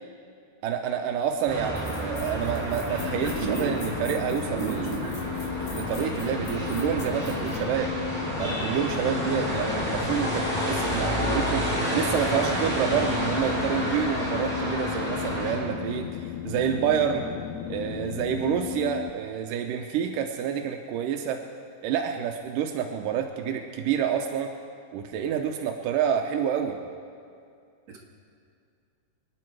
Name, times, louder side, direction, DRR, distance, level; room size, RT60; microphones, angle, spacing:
voice 1, 0.6-5.0 5.7-7.9 8.4-17.3 17.7-21.4 21.8-24.5 24.9-26.8, right 8 dB, 85° right, 4 dB, 2.4 m, -28 dB
sound 1, 1.5-15.5, equal, 15° right, 4.8 m, -30 dB
sound 2, 1.8-7.6, left 4 dB, 65° left, 3.6 m, -46 dB
sound 3, 3.0-19.1, left 11 dB, 80° left, 2.1 m, -35 dB
voice 2, 3.0-3.8 4.6-5.2 9.0-9.5 27.9-28.0, right 5 dB, 55° right, -2 dB, 2.9 m, -34 dB
26.5 x 10.0 x 4.7 m, 2.4 s
omnidirectional pair, 3.7 m